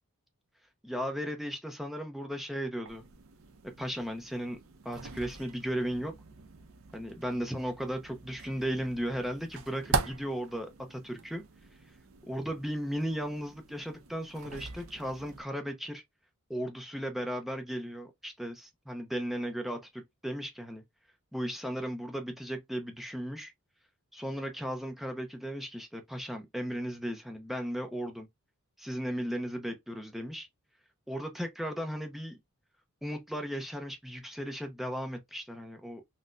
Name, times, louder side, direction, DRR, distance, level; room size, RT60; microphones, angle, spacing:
voice 1, 0.8-3.0 3.6-4.6 4.8-6.2 6.9-11.4 12.3-16.0 16.5-20.8 21.3-23.5 24.1-28.3 28.8-30.5 31.1-32.4 33.0-36.0, equal, ahead, 0.5 m, -36 dB
sound 1, 2.8-15.4, right 4 dB, 70° right, 0.6 m, -41 dB
4.0 x 2.1 x 2.4 m
head